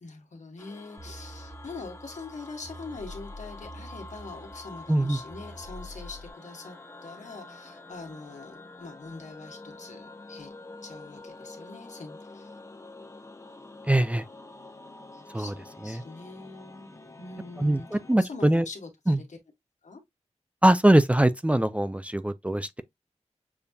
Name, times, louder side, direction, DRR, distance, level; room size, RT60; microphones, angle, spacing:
voice 1, 0.0-10.5 10.8-12.5 15.1-19.4 19.8-20.0, left 3 dB, 90° left, 1.3 m, -43 dB
sound 1, 0.6-18.2, left 2 dB, 25° left, 0.7 m, -47 dB
sound 2, 1.0-6.3, equal, 40° right, 1.4 m, -46 dB
voice 2, 13.9-14.3 15.3-15.5 15.8-16.0 17.6-18.7 19.1-19.2 20.6-22.8, right 1 dB, 10° right, 0.3 m, -22 dB
6.8 x 2.7 x 2.3 m
wide cardioid pair, 90°, 12 cm